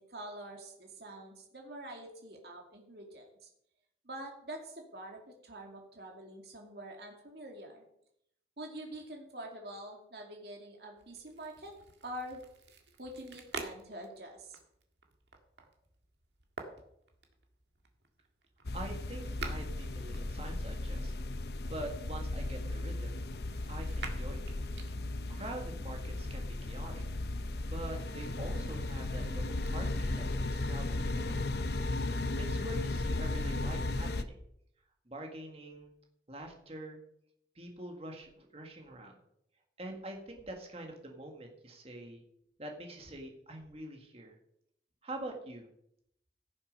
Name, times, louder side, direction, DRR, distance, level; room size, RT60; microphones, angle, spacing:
voice 1, 0.1-3.3 4.0-7.8 8.6-11.7 12.0-12.4 13.0-14.6, right 1 dB, 65° right, 1 dB, 2.4 m, -46 dB
sound 1, 11.0-20.9 21.6-25.8 26.4-29.8, right 4 dB, 80° right, 1.9 m, -50 dB
sound 2, 18.6-34.2, left 2 dB, 65° left, 0.7 m, -35 dB
voice 2, 18.7-21.1 21.7-23.2 23.7-24.6 25.3-27.0 27.6-31.5 32.4-34.4 35.1-35.9 36.3-37.0 37.6-39.2 39.8-42.2 42.6-44.4 45.0-45.7, right 1 dB, 35° right, 2 dB, 1.9 m, -45 dB
16.0 x 7.1 x 5.4 m, 0.75 s
head